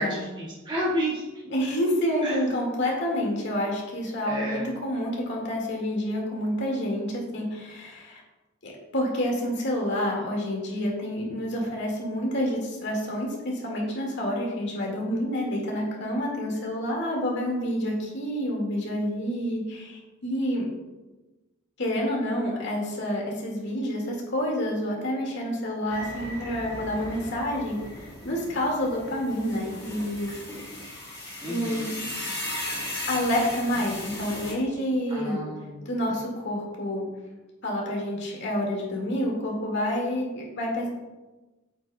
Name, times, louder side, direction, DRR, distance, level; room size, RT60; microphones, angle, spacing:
voice 1, 0.4-1.5 2.2-2.5 4.2-4.6 31.4-31.9 35.1-35.9, equal, 25° right, -6 dB, 1.6 m, -31 dB
voice 2, 1.5-8.2 8.6-20.6 21.8-30.4 31.5-32.0 33.1-35.5 35.8-37.1 37.6-40.9, equal, 60° left, -2 dB, 1.8 m, -28 dB
sound 1, 25.9-34.5, left 1 dB, 15° left, 2.0 m, -37 dB
8.4 x 6.7 x 2.2 m, 1.1 s
head